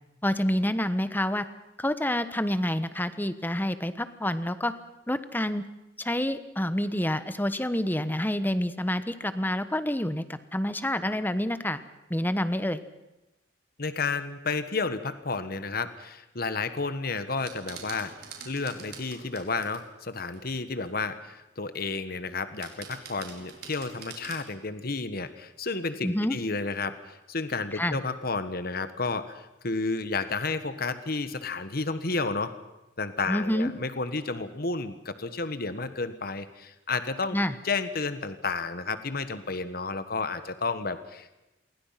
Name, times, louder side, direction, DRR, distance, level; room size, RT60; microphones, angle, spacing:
voice 1, 0.2-1.5 1.8-4.7 5.1-5.6 6.0-11.8 12.1-12.8 26.0-26.4 27.7-28.0 33.3-33.7 37.3-37.5, left 1 dB, 10° left, 12 dB, 1.2 m, -28 dB
voice 2, 13.8-18.1 18.4-32.5 33.0-37.4 37.6-41.4, left 4 dB, 55° left, 11 dB, 1.5 m, -31 dB
sound 1, 17.3-19.8 20.3-20.9 21.8-22.2 22.6-24.5, right 6 dB, 60° right, 5.2 m, -45 dB
27.5 x 22.5 x 5.9 m, 0.99 s
head